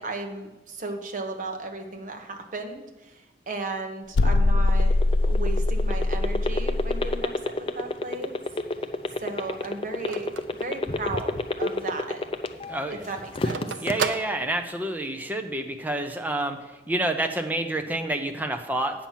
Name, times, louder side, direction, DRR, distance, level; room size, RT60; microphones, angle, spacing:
voice 1, 0.0-5.0 5.2-8.4 9.2-12.3 12.9-13.7, right 3 dB, 45° right, 4 dB, 1.1 m, -35 dB
sound 1, 4.1-7.2, left 2 dB, 80° left, 0.4 m, -22 dB
sound 2, 4.6-12.8 13.2-13.9, left 2 dB, 30° left, 0.5 m, -27 dB
Telephone, 8.1-11.5 11.9-12.0 12.2-15.1, right 6 dB, 85° right, 0.6 m, -35 dB
voice 2, 12.7-13.1 13.8-16.6 16.9-19.1, right 1 dB, 10° right, 5 dB, 0.7 m, -28 dB
8.7 x 5.9 x 7.3 m, 1.1 s
head